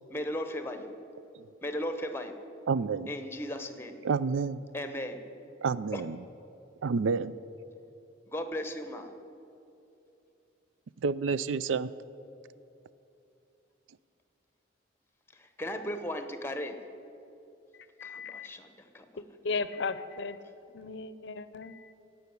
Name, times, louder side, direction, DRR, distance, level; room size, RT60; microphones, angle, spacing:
voice 1, 0.1-0.9 1.6-2.4 3.1-3.9 4.7-5.2 5.9-6.0 8.3-9.1 15.3-16.8 18.0-19.2, left 1 dB, 15° left, 8 dB, 0.9 m, -36 dB
voice 2, 2.7-3.1 4.0-4.6 5.6-6.2 6.8-7.4 11.0-11.9, right 5 dB, 85° right, 16 dB, 0.4 m, -29 dB
voice 3, 17.7-18.5 19.2-20.4 20.7-21.9, left 4 dB, 65° left, 14 dB, 0.6 m, -36 dB
16.5 x 5.7 x 9.4 m, 2.8 s
head